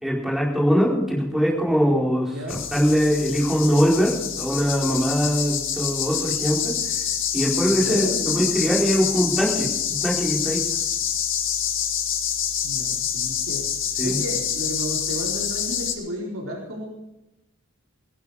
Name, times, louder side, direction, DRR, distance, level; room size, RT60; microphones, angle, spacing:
voice 1, 0.0-2.3 2.7-6.7 7.3-9.7 10.0-10.6 14.0-14.2, equal, ahead, -4 dB, 4.7 m, -22 dB
sound 1, 2.5-15.9, left 8 dB, 60° left, 1.9 m, -26 dB
voice 2, 7.8-8.5 12.6-13.7 14.0-16.9, equal, 70° right, -2 dB, 4.4 m, -33 dB
19.0 x 11.0 x 5.0 m, 0.95 s
head